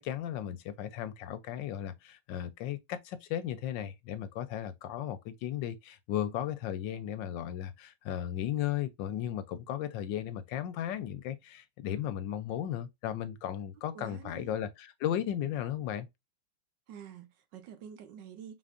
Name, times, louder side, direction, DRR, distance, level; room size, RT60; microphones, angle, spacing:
voice 1, 0.0-16.1, left 11 dB, 75° left, 1.2 m, -35 dB
voice 2, 13.9-14.6 16.9-18.6, right 8 dB, 70° right, 1.3 m, -48 dB
4.3 x 3.8 x 2.4 m
omnidirectional pair, 2.2 m